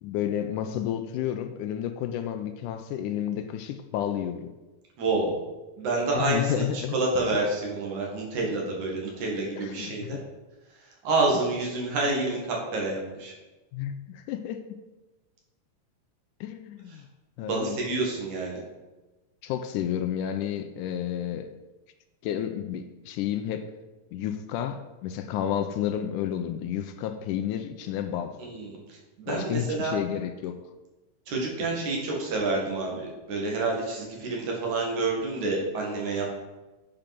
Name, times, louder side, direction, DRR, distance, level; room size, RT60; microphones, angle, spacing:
voice 1, 0.0-4.5 6.1-7.0 9.6-10.2 13.7-14.8 16.4-17.1 17.4-17.8 19.4-21.5 22.2-23.7 24.1-28.4 29.3-30.6, left 10 dB, 80° left, 8 dB, 2.1 m, -31 dB
voice 2, 5.0-5.3 5.8-10.1 11.0-13.3 17.4-18.6 28.4-28.8 29.2-30.0 31.3-36.4, right 3 dB, 65° right, -1 dB, 3.3 m, -28 dB
8.8 x 5.2 x 6.0 m, 1.1 s
omnidirectional pair, 3.8 m